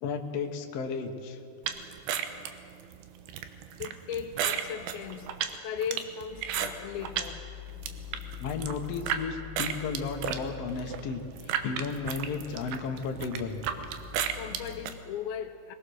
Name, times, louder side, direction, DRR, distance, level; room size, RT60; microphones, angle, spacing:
voice 1, 0.0-1.4 8.4-13.6 14.2-14.3, left 5 dB, 60° left, 3 dB, 1.7 m, -34 dB
sound 1, 1.6-7.3 7.7-9.2 9.6-14.9, right 9 dB, 80° right, 3.0 m, -34 dB
voice 2, 3.8-5.4 5.6-7.4 14.4-15.8, left 8 dB, 80° left, 7 dB, 2.4 m, -37 dB
sound 2, 6.3-14.9, left 14 dB, 5° right, 3.5 m, -46 dB
23.0 x 20.0 x 6.5 m, 2.6 s
omnidirectional pair, 4.7 m